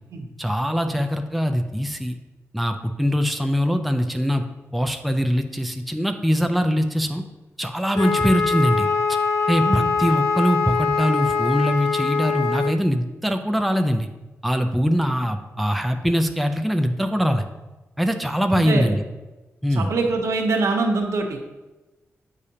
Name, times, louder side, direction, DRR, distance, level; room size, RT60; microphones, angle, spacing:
voice 1, 0.4-2.2 2.5-4.4 4.7-7.2 7.6-8.9 9.5-14.1 14.4-17.4 18.0-19.0 19.6-19.9, equal, ahead, 6 dB, 0.4 m, -22 dB
Wind instrument woodwind instrument, 7.9-12.7, left 5 dB, 85° left, 0.6 m, -23 dB
voice 2, 18.6-19.0 19.7-21.4, right 3 dB, 75° right, 3 dB, 0.9 m, -24 dB
8.2 x 4.9 x 2.8 m, 1.1 s
wide cardioid pair, 160°, 5 cm